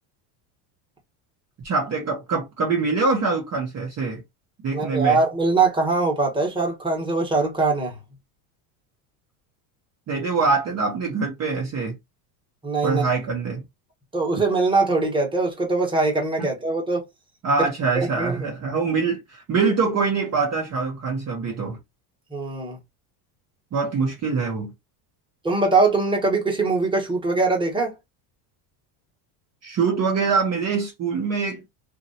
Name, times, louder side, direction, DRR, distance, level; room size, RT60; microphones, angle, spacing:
voice 1, 1.6-4.2 4.6-5.2 10.1-11.9 12.8-13.6 16.4-16.5 17.4-21.8 23.7-24.7 29.6-31.6, right 4 dB, 30° right, 0.8 m, -24 dB
voice 2, 4.7-8.0 12.6-13.0 14.1-17.0 17.9-18.4 22.3-22.8 25.4-27.9, right 3 dB, 10° right, 1.2 m, -22 dB
3.0 x 2.6 x 2.7 m
supercardioid pair, 125°, 50 cm